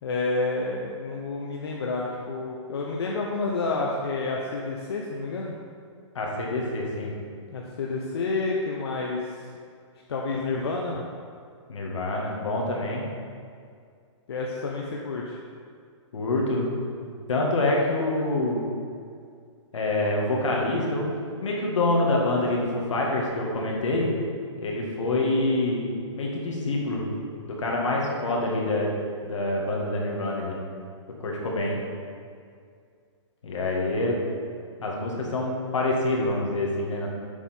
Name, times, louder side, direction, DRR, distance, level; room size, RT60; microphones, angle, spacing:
voice 1, 0.0-5.5 7.5-9.4 10.1-11.0 14.3-15.4 25.0-25.4, left 3 dB, 55° left, -2 dB, 0.7 m, -29 dB
voice 2, 6.2-7.2 11.7-13.1 16.1-16.7 17.3-18.7 19.7-21.1 21.4-24.2 24.6-25.9 26.2-27.0 27.4-30.6 31.2-31.8 33.4-34.2 34.8-37.1, left 2 dB, 75° left, -2 dB, 1.8 m, -26 dB
7.1 x 5.7 x 4.4 m, 2.2 s
hypercardioid pair, 180°, 16 cm